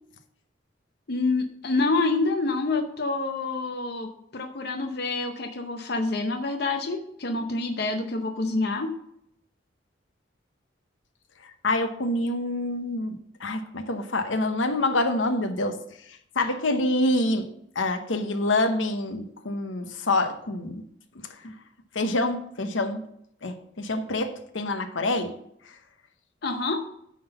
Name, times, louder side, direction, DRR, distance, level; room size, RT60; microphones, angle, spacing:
voice 1, 1.1-8.9 26.4-26.8, left 3 dB, 55° left, 5 dB, 0.7 m, -27 dB
voice 2, 11.6-15.8 16.4-17.5 17.8-20.8 21.4-21.5 21.9-23.0 23.4-25.4, left 2 dB, 80° left, 7 dB, 0.9 m, -26 dB
9.4 x 3.8 x 6.9 m, 0.72 s
head